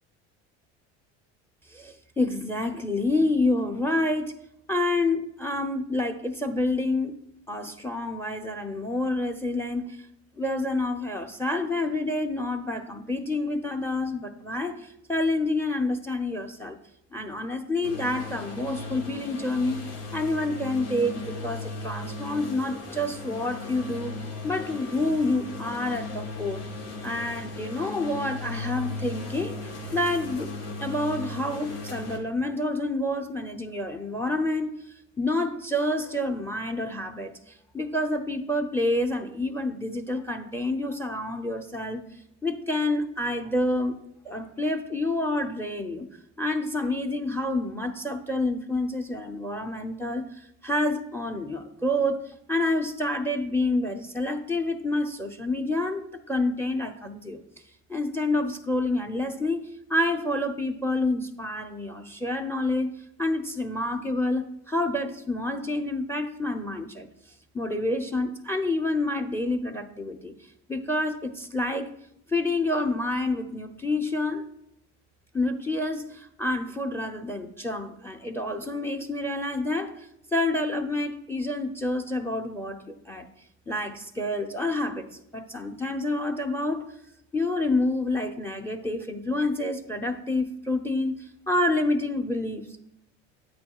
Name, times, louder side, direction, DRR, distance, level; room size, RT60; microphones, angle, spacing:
voice 1, 1.7-4.4 4.7-7.2 7.5-10.0 10.4-16.8 17.1-19.8 20.1-24.1 24.4-26.6 27.0-29.6 29.9-30.5 30.8-34.7 35.2-37.3 37.7-42.0 42.4-44.0 44.2-46.1 46.4-52.2 52.5-57.4 57.9-59.6 59.9-67.1 67.5-70.3 70.7-71.9 72.3-74.4 75.3-79.9 80.3-83.3 83.7-85.1 85.3-86.8 87.3-92.8, left 2 dB, 5° left, 7 dB, 0.7 m, -28 dB
sound 1, 17.8-32.2, left 3 dB, 85° left, 1.4 m, -37 dB
9.2 x 8.5 x 2.4 m, 0.78 s
hypercardioid pair, 80°, 35 cm